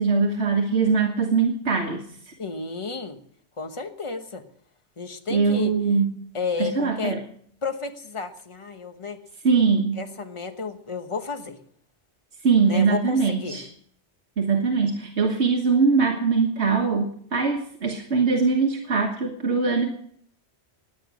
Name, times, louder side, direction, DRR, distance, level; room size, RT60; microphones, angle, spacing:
voice 1, 0.0-2.1 5.3-6.2 6.6-7.2 9.4-10.0 12.4-13.6 14.4-19.9, right 5 dB, 80° right, 1 dB, 1.8 m, -22 dB
voice 2, 2.4-3.2 3.6-4.4 5.0-5.8 6.3-7.2 7.6-9.2 9.5-9.6 10.0-11.6 12.7-13.6, left 5 dB, 30° left, 6 dB, 1.3 m, -32 dB
18.5 x 9.2 x 6.3 m, 0.64 s
omnidirectional pair, 1.1 m